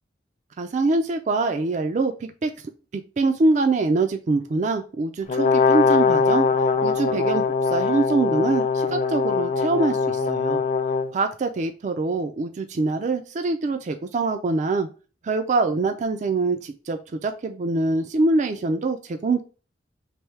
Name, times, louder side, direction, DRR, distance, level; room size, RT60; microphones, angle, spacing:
voice 1, 0.6-2.5 2.9-6.5 6.8-10.6 11.1-14.9 15.2-19.4, right 3 dB, 40° right, 7 dB, 0.3 m, -24 dB
Brass instrument, 5.3-11.1, left 5 dB, 40° left, 0.4 m, -21 dB
3.4 x 2.6 x 4.4 m, 0.35 s
head